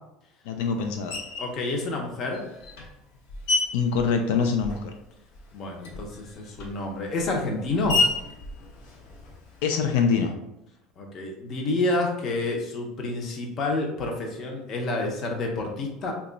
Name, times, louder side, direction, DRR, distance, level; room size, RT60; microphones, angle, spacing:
voice 1, 0.5-1.2 3.7-4.9 9.6-10.3, left 5 dB, 85° left, 4 dB, 0.4 m, -24 dB
Screech, 1.1-1.6 2.3-5.0 5.3-9.6, left 3 dB, 70° left, 0.8 m, -31 dB
voice 2, 1.4-2.4 5.5-8.0 11.0-16.1, left 2 dB, 35° left, 1 dB, 0.6 m, -29 dB
2.9 x 2.3 x 3.8 m, 0.88 s
cardioid pair, 160°, 0 cm